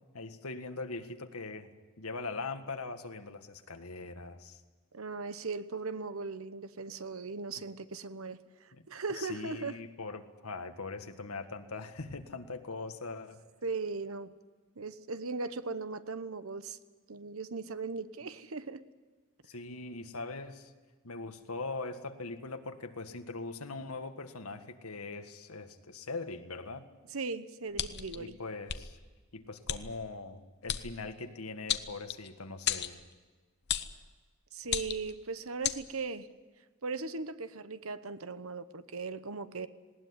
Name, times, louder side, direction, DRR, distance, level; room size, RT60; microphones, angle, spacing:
voice 1, 0.1-4.6 8.7-8.9 9.1-13.4 19.4-20.7 21.0-26.9 28.2-29.0 29.3-33.0, left 3 dB, 80° left, 7 dB, 1.8 m, -41 dB
voice 2, 4.9-9.8 13.6-14.4 14.7-16.8 17.1-18.8 27.1-28.4 34.5-36.3 36.8-39.7, right 4 dB, 70° right, 13 dB, 1.1 m, -38 dB
sound 1, 27.7-28.2 28.7-28.8 29.7-29.8 30.7-30.8 31.7-32.3 32.7-32.9 33.7-33.9 34.6-35.1 35.6-35.8, left 10 dB, 50° left, 1.1 m, -33 dB
19.5 x 18.5 x 9.7 m, 1.4 s
head